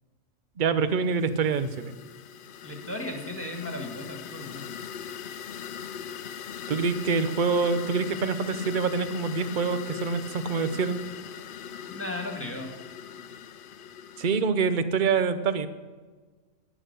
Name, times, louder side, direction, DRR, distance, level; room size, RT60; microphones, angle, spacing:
voice 1, 0.6-1.9 6.7-11.0 14.2-15.7, right 5 dB, 45° right, 11 dB, 0.8 m, -26 dB
sound 1, 1.1-14.4, left 8 dB, 85° left, 0.4 m, -40 dB
voice 2, 2.6-4.7 11.9-12.7, left 1 dB, 10° left, 2 dB, 1.8 m, -36 dB
11.0 x 10.5 x 6.7 m, 1.4 s
omnidirectional pair, 1.5 m